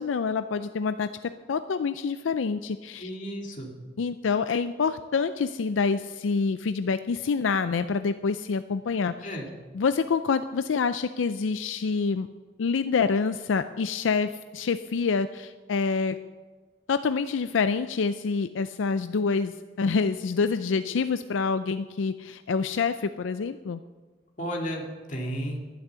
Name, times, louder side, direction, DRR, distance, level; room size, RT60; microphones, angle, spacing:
voice 1, 0.0-3.1 4.0-9.2 9.7-12.3 12.6-16.2 16.9-23.8, left 5 dB, 85° left, 11 dB, 0.4 m, -27 dB
voice 2, 3.0-3.7 9.2-9.5 24.4-25.6, equal, 40° left, 0 dB, 2.3 m, -33 dB
11.5 x 11.0 x 6.9 m, 1.4 s
head